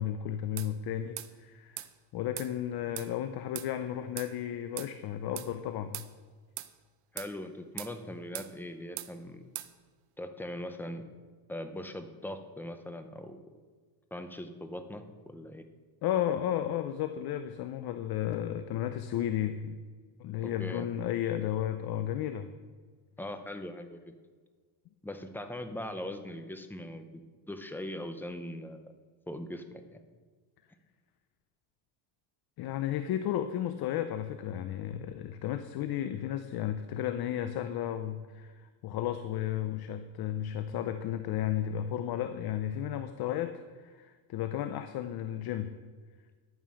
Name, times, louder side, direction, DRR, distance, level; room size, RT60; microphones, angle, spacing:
voice 1, 0.0-1.8 2.1-6.1 16.0-19.8 20.2-22.5 32.6-45.8, left 11 dB, 50° left, 9 dB, 0.7 m, -33 dB
sound 1, 0.6-0.7 1.2-1.3 1.8-1.9 2.4-2.5 3.0-3.1 3.6-3.7 4.2-4.3 4.8-4.9 5.4-5.5 5.9-6.1 6.6-6.7 7.2-7.3 7.8-7.9 8.3-8.5 9.0-9.1 9.6-9.7, right 16 dB, 80° right, 0.9 m, -40 dB
voice 2, 7.1-9.4 10.2-11.0 11.5-13.4 14.1-15.6 20.4-20.9 23.2-24.1 25.0-27.1 27.5-28.9 29.3-30.0, left 1 dB, 5° left, 7 dB, 0.7 m, -40 dB
11.0 x 9.3 x 6.3 m, 1.5 s
cardioid pair, 145°, 49 cm